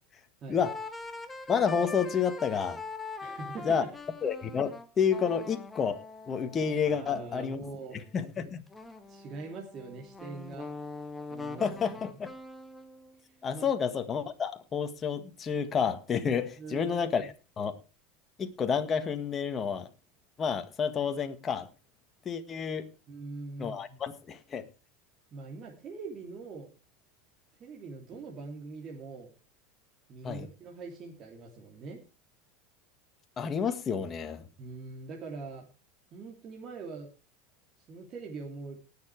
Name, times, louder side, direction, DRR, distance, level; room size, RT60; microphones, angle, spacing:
sound 1, 0.6-8.0 8.7-13.2, left 3 dB, 10° left, 1.7 m, -43 dB
voice 1, 1.5-2.8 3.7-3.8 4.2-6.0 6.3-7.6 8.1-8.6 11.6-12.3 13.4-17.7 18.4-19.9 20.4-21.7 22.3-22.9 23.6-24.6 30.2-30.5 33.4-34.4, left 6 dB, 30° left, 7 dB, 1.7 m, -30 dB
voice 2, 3.2-3.9 6.4-6.5 6.8-8.0 9.1-10.7 11.3-12.2 13.5-13.7 16.6-17.3 23.1-24.0 25.3-26.7 27.6-29.3 30.1-32.0 34.6-35.7 36.1-37.1 37.8-38.8, right 4 dB, 40° right, 0 dB, 2.9 m, -43 dB
18.5 x 7.2 x 4.7 m, 0.32 s
hypercardioid pair, 100°, 0 cm